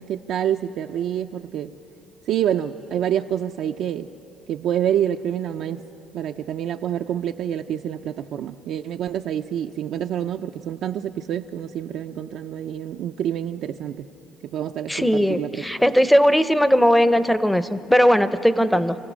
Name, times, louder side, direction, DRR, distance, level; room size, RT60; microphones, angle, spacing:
voice 1, 0.0-1.7 2.3-4.1 4.5-5.8 6.1-14.1 14.4-15.7, right 10 dB, 65° right, 4 dB, 0.5 m, -27 dB
voice 2, 14.9-19.0, equal, 5° left, 12 dB, 0.7 m, -18 dB
27.5 x 16.0 x 6.3 m, 2.9 s
cardioid pair, 105°, 0 cm